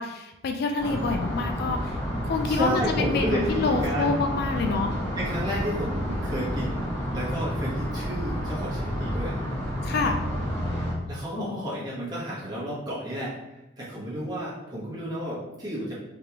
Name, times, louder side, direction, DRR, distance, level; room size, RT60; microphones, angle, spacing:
voice 1, 0.0-2.0 2.2-4.9 9.8-10.2 11.4-11.7, left 4 dB, 50° left, 5 dB, 0.3 m, -27 dB
sound 1, 0.8-10.9, equal, 30° left, 1.5 m, -30 dB
voice 2, 2.5-4.2 5.1-9.6 10.7-13.3 13.8-15.9, equal, 20° right, -7 dB, 1.1 m, -32 dB
3.5 x 3.2 x 2.9 m, 0.97 s
head